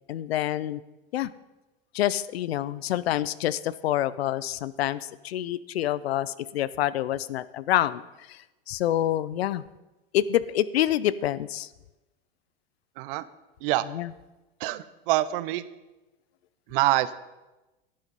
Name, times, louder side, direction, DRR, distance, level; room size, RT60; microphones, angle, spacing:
voice 1, 0.1-0.8 1.1-1.3 1.9-8.0 8.3-9.6 10.1-11.7 13.9-14.1, left 12 dB, 85° left, 18 dB, 0.6 m, -27 dB
voice 2, 13.0-13.3 13.6-13.8 14.6-15.6 16.7-17.1, right 16 dB, 60° right, 15 dB, 0.7 m, -25 dB
12.0 x 7.4 x 5.3 m, 1.1 s
hypercardioid pair, 110°, 30 cm